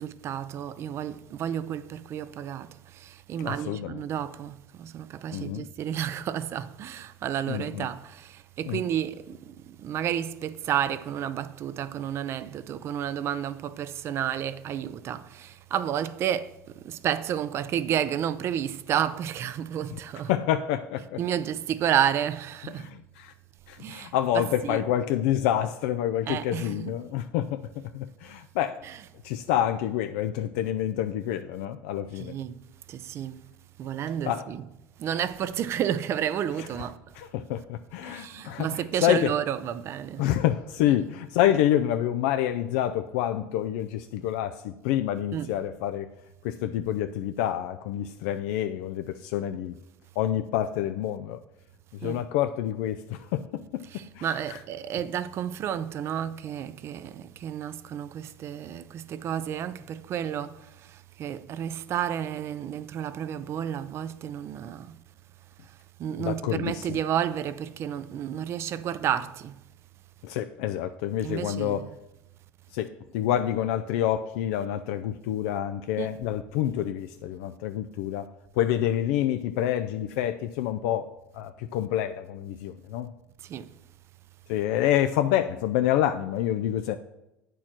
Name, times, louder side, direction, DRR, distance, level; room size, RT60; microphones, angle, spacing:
voice 1, 0.0-20.3 21.2-22.9 23.8-24.8 26.3-26.9 28.8-29.0 32.2-32.6 32.9-33.4 33.8-34.6 35.0-37.0 38.0-40.2 45.3-45.5 52.0-52.2 53.9-65.0 65.6-69.6 71.2-71.8 76.0-76.1 83.4-83.7, right 10 dB, 45° right, 0.5 m, -31 dB
voice 2, 3.4-4.0 5.3-5.6 7.5-7.9 8.7-8.8 20.3-21.2 22.8-23.3 23.7-28.8 29.2-32.3 34.2-34.5 37.1-39.3 40.2-46.1 46.4-49.8 50.2-51.4 51.9-54.6 66.2-67.0 70.2-71.8 72.7-78.3 78.6-83.1 84.5-87.0, left 11 dB, 80° left, 0.4 m, -28 dB
8.6 x 4.6 x 5.9 m
supercardioid pair, 115°, 6 cm